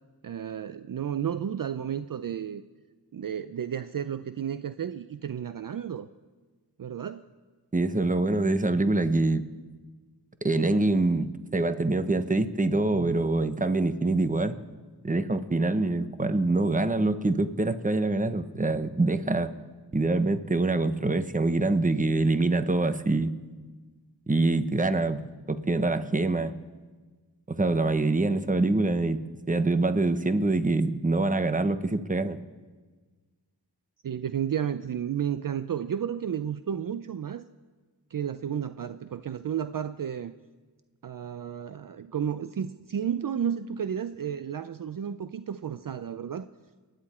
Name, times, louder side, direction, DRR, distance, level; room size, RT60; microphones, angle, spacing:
voice 1, 0.2-2.6 3.1-6.1 6.8-7.3 12.9-13.2 34.0-37.4 38.1-40.3 41.0-46.5, right 8 dB, 55° right, 12 dB, 0.5 m, -32 dB
voice 2, 7.7-9.4 10.4-14.5 15.0-19.5 19.9-23.3 24.3-25.2 25.5-26.5 27.5-29.2 29.5-32.4, right 2 dB, 20° right, 10 dB, 1.0 m, -25 dB
29.5 x 10.0 x 4.4 m, 1.4 s
wide cardioid pair, 65°, 41 cm